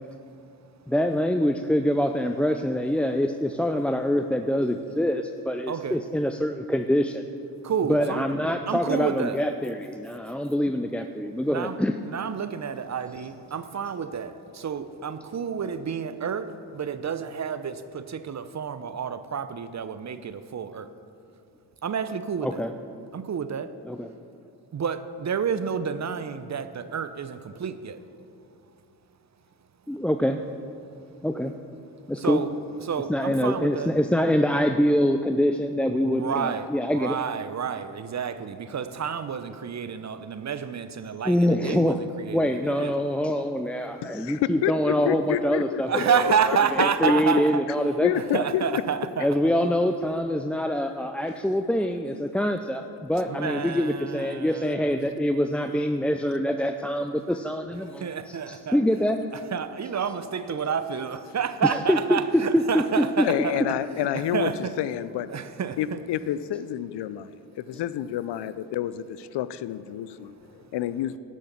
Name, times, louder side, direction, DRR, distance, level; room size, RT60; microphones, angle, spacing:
voice 1, 0.9-7.2 7.9-11.9 22.4-22.7 23.9-24.1 29.9-30.4 31.2-31.5 32.1-32.4 33.1-37.2 41.3-42.0 42.3-46.2 46.5-46.6 47.0-48.4 49.2-59.2 61.6-63.3, equal, 5° left, 6 dB, 0.3 m, -25 dB
voice 2, 5.7-6.0 7.6-8.2 8.7-9.4 11.5-11.8 12.1-20.9 21.8-22.6 23.1-23.7 24.7-28.1 29.9-30.0 32.0-32.5 32.8-33.9 36.0-42.9 45.8-47.6 48.1-49.4 53.3-55.0 58.0-58.8 59.3-63.6 64.0-64.7 65.3-66.0 70.4-70.7, right 7 dB, 35° right, 11 dB, 0.7 m, -30 dB
voice 3, 44.0-46.0 48.0-48.8 60.6-60.8 63.2-64.5 64.8-65.3 65.8-71.2, left 11 dB, 60° left, 15 dB, 0.6 m, -29 dB
11.5 x 6.4 x 6.8 m, 2.6 s
hypercardioid pair, 50°, 47 cm